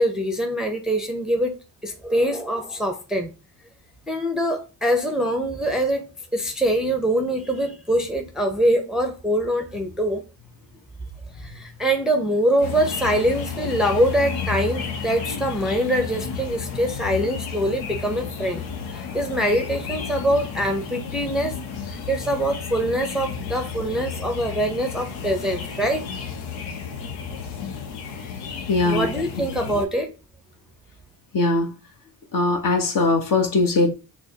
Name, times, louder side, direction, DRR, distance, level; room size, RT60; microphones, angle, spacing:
voice 1, 0.0-1.6 1.8-3.3 4.1-10.2 11.4-18.6 18.9-21.6 21.9-26.1 28.8-30.1, right 1 dB, ahead, 0.7 m, -24 dB
sound 1, 12.6-29.8, left 6 dB, 85° left, 0.7 m, -32 dB
voice 2, 28.7-29.1 29.4-29.5 31.3-31.7 32.3-33.9, left 3 dB, 45° left, 1.0 m, -20 dB
6.1 x 2.1 x 2.8 m
supercardioid pair, 60°, 47 cm